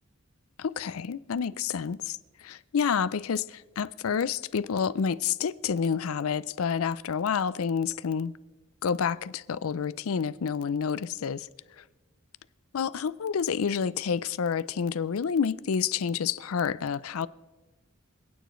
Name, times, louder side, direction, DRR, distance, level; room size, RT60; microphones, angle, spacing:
voice 1, 0.6-8.3 8.8-11.5 12.7-17.3, left 6 dB, 80° left, 0.5 m, -29 dB
26.0 x 9.2 x 3.1 m
head